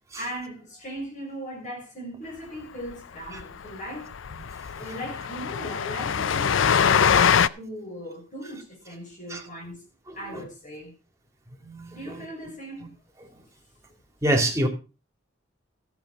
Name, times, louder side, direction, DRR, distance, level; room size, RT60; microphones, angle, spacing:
voice 1, 0.2-4.1 4.7-9.8 10.1-10.9 11.9-13.0, equal, 40° left, 5.8 m, -38 dB
Train, 2.9-3.0 3.3-3.4 3.7-3.8 4.1-7.5, left 7 dB, 85° left, 0.5 m, -23 dB
voice 2, 10.1-10.4 11.6-12.2 14.2-14.7, right 1 dB, 15° right, 2.6 m, -27 dB
14.0 x 7.6 x 5.4 m
head